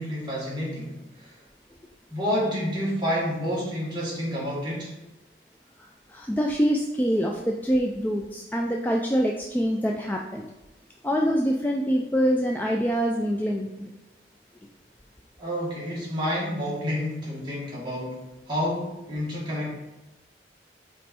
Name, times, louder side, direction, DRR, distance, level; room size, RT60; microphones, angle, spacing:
voice 1, 0.0-1.4 2.1-5.0 15.4-19.7, equal, 25° right, -6 dB, 1.8 m, -29 dB
voice 2, 6.1-10.5 11.0-13.9, equal, 10° left, 0 dB, 0.3 m, -25 dB
5.3 x 4.2 x 4.3 m, 1.0 s
head